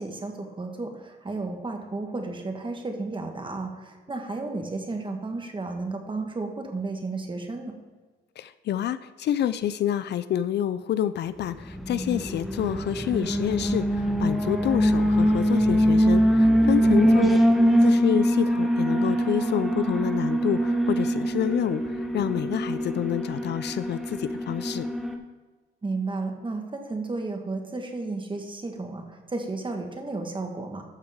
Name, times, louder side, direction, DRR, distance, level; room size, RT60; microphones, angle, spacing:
voice 1, 0.0-7.7 17.0-17.3 25.8-30.8, right 3 dB, 25° right, 4 dB, 1.5 m, -33 dB
voice 2, 8.4-17.4 17.8-24.9, left 11 dB, 60° left, 14 dB, 0.4 m, -28 dB
Alarm, 11.7-25.2, equal, ahead, 1.0 m, -23 dB
12.5 x 6.4 x 3.6 m, 1.3 s
cardioid pair, 90°, 20 cm